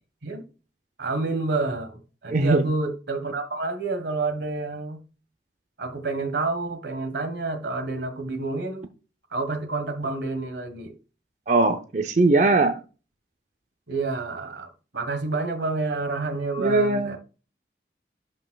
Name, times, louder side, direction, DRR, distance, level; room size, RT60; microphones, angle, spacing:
voice 1, 1.0-5.0 5.8-8.9 9.3-10.9 13.9-17.2, right 3 dB, 85° right, 1.4 m, -29 dB
voice 2, 2.3-2.7 11.5-12.8 16.6-17.2, right 3 dB, 40° right, 0.6 m, -20 dB
11.5 x 5.3 x 2.3 m
head